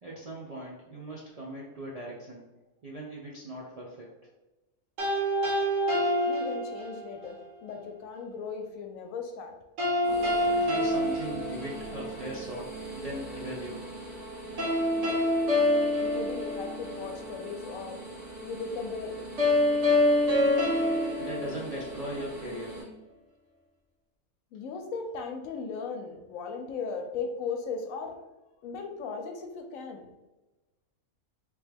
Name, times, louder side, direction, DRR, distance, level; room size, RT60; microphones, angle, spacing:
voice 1, 0.0-2.4 2.8-4.1 10.6-13.8 21.2-22.8, right 1 dB, 50° right, -4 dB, 0.4 m, -39 dB
sound 1, 5.0-7.1 9.8-12.2 14.6-17.1 19.4-22.2, left 1 dB, 70° right, 1.4 m, -26 dB
voice 2, 6.3-9.6 16.0-18.0 18.4-19.3 24.5-28.2 28.6-30.1, left 4 dB, 80° left, 5 dB, 1.0 m, -37 dB
sound 2, 10.0-22.8, right 2 dB, 30° right, 1.5 m, -42 dB
3.4 x 3.0 x 3.3 m, 1.1 s
omnidirectional pair, 1.4 m